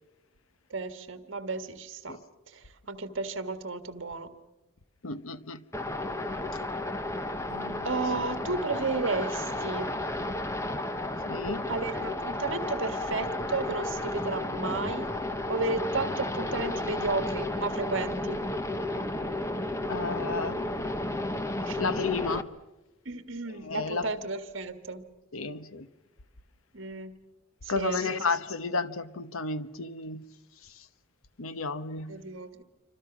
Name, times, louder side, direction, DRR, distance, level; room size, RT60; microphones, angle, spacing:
voice 1, 0.7-2.2 2.5-4.3 7.8-9.9 11.7-15.1 15.5-18.4 21.6-21.8 23.1-25.1 26.7-27.1 27.6-28.2 32.1-32.6, right 3 dB, 60° right, 1.7 m, -33 dB
voice 2, 5.0-5.6 11.3-11.7 19.9-20.6 21.8-22.5 23.6-24.1 25.3-25.9 27.7-30.2 31.4-32.2, left 4 dB, 75° left, 1.0 m, -32 dB
sound 1, 5.7-22.4, left 1 dB, 15° left, 1.0 m, -32 dB
sound 2, 7.5-10.7, left 7 dB, 30° left, 3.4 m, -54 dB
27.5 x 25.5 x 6.1 m
head